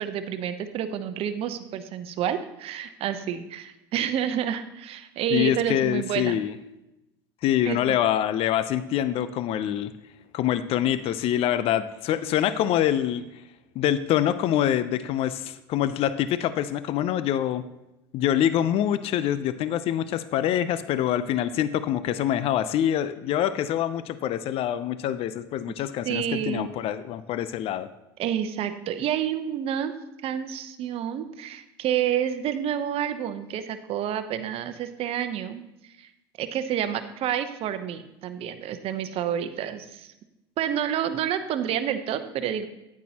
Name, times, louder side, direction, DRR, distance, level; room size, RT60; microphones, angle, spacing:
voice 1, 0.0-6.4 7.6-8.0 26.0-26.7 28.2-29.9 30.2-36.1 36.4-40.1 40.6-42.7, right 9 dB, 50° right, 9 dB, 0.8 m, -29 dB
voice 2, 5.3-6.5 7.4-9.9 10.3-13.2 13.8-17.6 18.1-27.9, left 11 dB, 50° left, 14 dB, 0.6 m, -25 dB
9.5 x 9.2 x 2.9 m, 0.93 s
hypercardioid pair, 80°, 13 cm